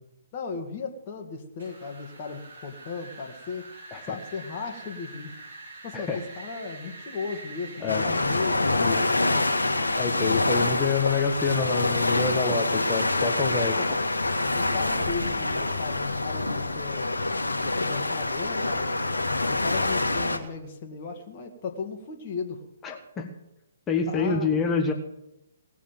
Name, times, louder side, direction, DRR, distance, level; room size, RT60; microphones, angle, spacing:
voice 1, 0.3-3.6 4.0-5.4 5.8-9.0 12.3-12.8 13.6-13.9 14.5-17.1 17.6-18.9 19.4-22.6 24.1-24.5, left 4 dB, 35° left, 2 dB, 2.1 m, -36 dB
Wind, 1.6-13.6, right 2 dB, 60° right, 7.7 m, -46 dB
voice 2, 7.8-8.2 8.8-9.0 10.0-13.8 22.8-23.3 23.9-24.9, left 5 dB, 15° left, 3 dB, 1.6 m, -27 dB
sound 1, 7.9-20.4, left 2 dB, 80° left, 1.8 m, -26 dB
18.5 x 7.2 x 9.2 m, 0.83 s
figure-of-eight pair, 130°, 0 cm